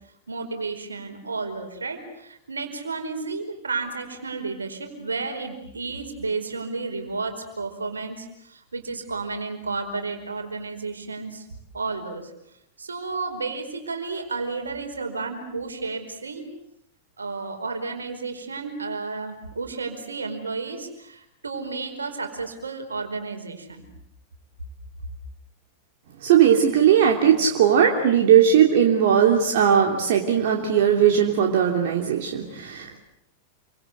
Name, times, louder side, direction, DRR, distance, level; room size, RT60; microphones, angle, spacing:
voice 1, 0.3-11.5 11.7-12.2 12.8-16.5 17.2-23.8, right 4 dB, 75° right, 5 dB, 4.9 m, -32 dB
voice 2, 26.2-33.0, right 8 dB, 55° right, 1 dB, 3.1 m, -18 dB
29.0 x 25.0 x 8.2 m, 0.79 s
figure-of-eight pair, 95°, 0 cm